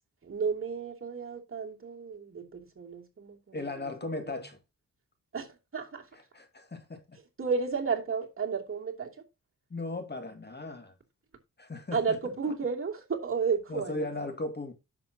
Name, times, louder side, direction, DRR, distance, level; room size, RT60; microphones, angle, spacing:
voice 1, 0.2-3.6 5.3-5.5 5.7-6.0 7.4-9.1 11.9-14.1, right 5 dB, 40° right, 2.8 m, -32 dB
voice 2, 3.5-4.6 6.1-7.2 9.7-10.9 11.6-12.3 13.7-14.7, left 2 dB, 30° left, 2.0 m, -37 dB
10.5 x 7.3 x 2.8 m
cardioid pair, 80°, 32 cm